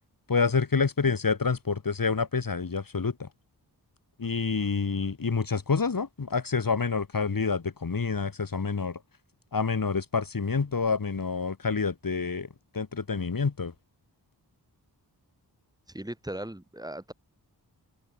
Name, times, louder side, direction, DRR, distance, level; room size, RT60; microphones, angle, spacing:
voice 1, 0.3-3.3 4.2-9.0 9.5-12.5 12.7-13.7, left 5 dB, 55° left, 4.9 m, -28 dB
voice 2, 15.9-17.1, right 1 dB, 10° right, 6.6 m, -38 dB
open air
wide cardioid pair, 120°, 40 cm